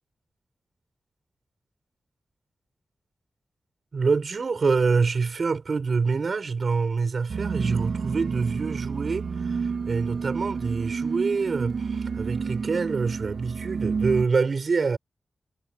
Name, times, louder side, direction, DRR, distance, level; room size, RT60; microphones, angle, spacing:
voice 1, 3.9-15.0, right 4 dB, 50° right, 7.2 m, -26 dB
sound 1, 7.3-14.3, right 5 dB, 70° right, 2.5 m, -30 dB
wide cardioid pair, 180°, 0 cm